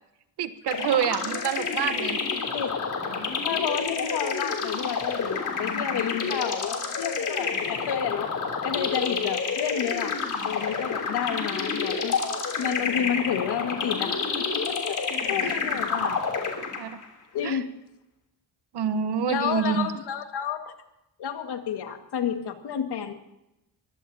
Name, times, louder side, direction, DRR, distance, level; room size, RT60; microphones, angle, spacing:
voice 1, 0.4-2.2 15.4-15.6 16.0-16.1 16.8-17.0 17.4-17.6 18.7-19.9, right 8 dB, 80° right, 11 dB, 1.2 m, -27 dB
sound 1, 0.7-17.1, left 5 dB, 50° left, 3.2 m, -29 dB
voice 2, 3.4-8.4 8.6-10.1 10.4-12.2 12.6-14.6 14.9-15.0 15.3-16.2 17.3-17.7 19.3-20.7 21.2-23.1, left 8 dB, 75° left, 6 dB, 1.9 m, -30 dB
23.0 x 16.0 x 2.8 m, 0.87 s
wide cardioid pair, 170°, 40 cm